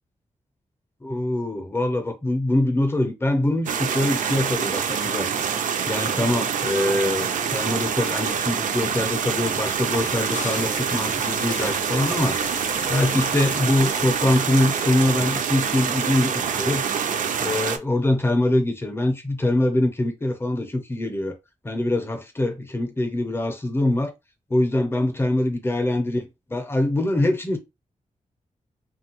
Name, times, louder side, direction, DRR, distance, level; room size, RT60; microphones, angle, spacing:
voice 1, 1.0-5.3 5.9-12.4 12.9-16.8 17.4-21.3 21.6-24.1 24.5-27.6, left 1 dB, 20° left, 0.6 m, -23 dB
sound 1, 3.7-17.8, right 7 dB, 85° right, 0.4 m, -26 dB
sound 2, 8.5-16.0, left 5 dB, 75° left, 0.5 m, -39 dB
3.2 x 2.2 x 2.8 m
wide cardioid pair, 140°, 13 cm